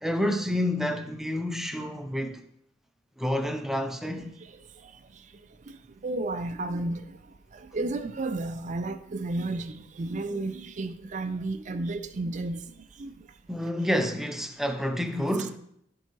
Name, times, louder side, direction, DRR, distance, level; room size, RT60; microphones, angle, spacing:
voice 1, 0.0-2.4 3.2-4.3 13.5-15.6, left 1 dB, ahead, 0.6 m, -29 dB
voice 2, 4.4-5.2 5.7-7.2 7.5-12.7 13.0-13.1, right 2 dB, 40° right, 0.5 m, -33 dB
13.0 x 4.6 x 3.0 m
head